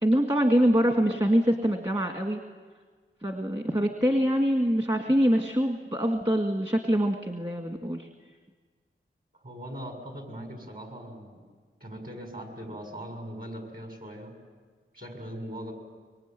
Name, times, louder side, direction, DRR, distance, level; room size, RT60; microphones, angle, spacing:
voice 1, 0.0-2.4 3.2-8.1, equal, 25° right, 3 dB, 2.0 m, -24 dB
voice 2, 9.3-11.3 11.8-14.3 14.9-15.7, equal, 45° right, 3 dB, 6.8 m, -40 dB
26.0 x 24.0 x 9.2 m, 1.5 s
wide cardioid pair, 70°, 21 cm